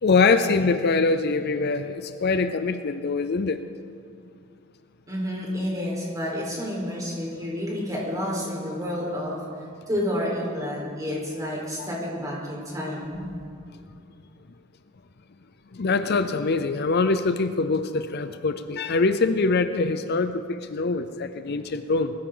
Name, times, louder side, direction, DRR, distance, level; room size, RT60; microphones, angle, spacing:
voice 1, 0.0-3.6 15.7-22.1, left 4 dB, 55° left, 10 dB, 0.6 m, -23 dB
voice 2, 5.1-9.4 9.9-13.3, left 1 dB, 20° right, -4 dB, 4.2 m, -30 dB
21.0 x 14.0 x 3.9 m, 2.3 s
head